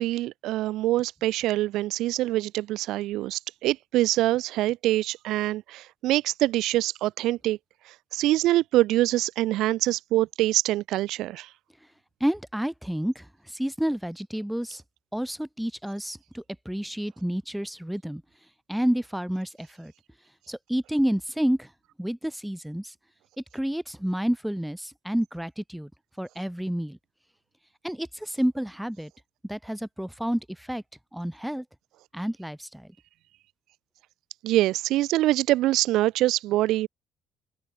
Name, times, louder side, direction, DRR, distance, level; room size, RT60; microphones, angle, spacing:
voice 1, 0.0-7.6 8.1-11.5 34.4-36.9, right 16 dB, 80° right, 0.5 m, -24 dB
voice 2, 12.2-13.3 13.5-14.8 15.1-18.2 18.7-19.9 20.5-21.7 22.0-22.9 23.5-25.9 26.2-27.0 27.8-29.1 29.5-30.4 30.7-30.8 31.1-31.6 32.1-32.9, equal, 5° right, 5.4 m, -29 dB
supercardioid pair, 70°, 0 cm